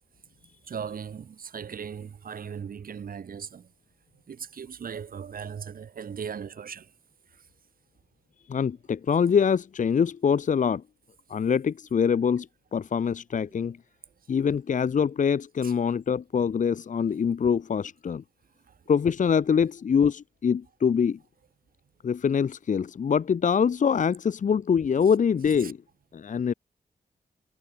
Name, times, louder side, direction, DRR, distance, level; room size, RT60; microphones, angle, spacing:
voice 1, 0.7-3.7 4.3-6.9 15.6-15.7 18.7-18.8 25.6-25.7, right 7 dB, 65° right, 3.0 m, -38 dB
voice 2, 8.5-10.8 11.3-12.5 12.7-13.8 14.3-18.2 18.9-21.2 22.0-25.8 26.1-26.5, left 7 dB, 55° left, 0.9 m, -24 dB
cardioid pair, 85°, 16 cm